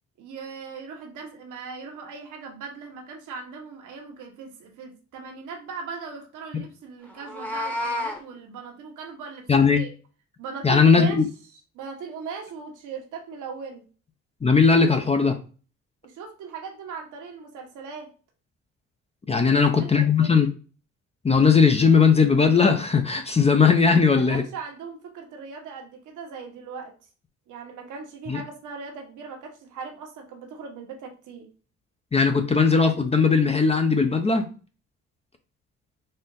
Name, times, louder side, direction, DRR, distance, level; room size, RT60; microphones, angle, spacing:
voice 1, 0.2-9.9 10.4-11.2 11.5-13.8 16.0-18.1 19.3-19.5 19.8-20.3 24.1-26.9 27.5-31.5, right 5 dB, 80° right, 2 dB, 1.1 m, -39 dB
Meow, 7.1-8.2, left 1 dB, 5° left, 0.9 m, -30 dB
voice 2, 9.5-9.8 10.6-11.3 14.4-15.4 19.3-20.5 21.2-24.4 28.3-28.4 32.1-34.5, left 5 dB, 20° left, 6 dB, 0.5 m, -18 dB
4.3 x 2.5 x 3.9 m, 0.37 s
cardioid pair, 90°, 30 cm